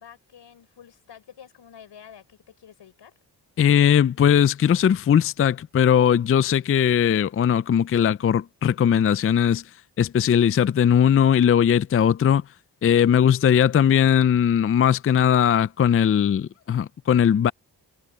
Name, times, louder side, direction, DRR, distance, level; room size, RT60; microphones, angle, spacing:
voice 1, 0.0-3.2, left 8 dB, 80° left, 5.5 m, -48 dB
voice 2, 3.6-9.6 10.0-12.4 12.8-17.5, left 9 dB, 35° left, 0.4 m, -19 dB
cardioid pair, 75°, 42 cm